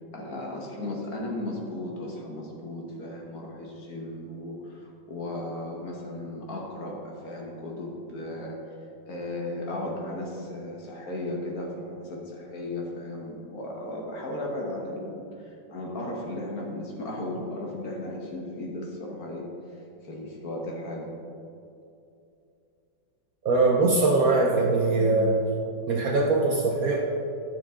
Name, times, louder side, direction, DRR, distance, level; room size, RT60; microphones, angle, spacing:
voice 1, 0.1-8.6 9.1-15.2 15.7-19.5 20.0-21.1, left 1 dB, 55° left, -1 dB, 1.4 m, -35 dB
voice 2, 23.4-25.4 25.9-27.0, right 3 dB, 65° right, 0 dB, 1.0 m, -22 dB
10.5 x 6.0 x 3.6 m, 2.7 s
omnidirectional pair, 2.1 m